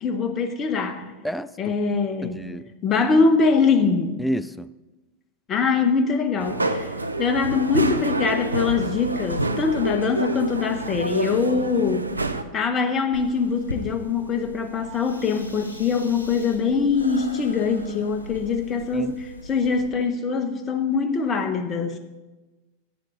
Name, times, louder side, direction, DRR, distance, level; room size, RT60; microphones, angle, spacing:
voice 1, 0.0-1.1 1.6-2.5 2.8-4.2 5.5-6.9 7.2-12.1 12.5-22.0, left 5 dB, 25° left, 7 dB, 1.0 m, -23 dB
voice 2, 1.2-1.7 2.2-2.7 4.2-4.7 18.9-19.2, equal, 5° left, 16 dB, 0.3 m, -30 dB
sound 1, 6.4-12.4, right 2 dB, 80° right, 0.5 m, -27 dB
sound 2, 13.1-19.9, left 1 dB, 80° left, 0.8 m, -40 dB
11.0 x 9.1 x 3.8 m, 1.1 s
figure-of-eight pair, 90°, 0 cm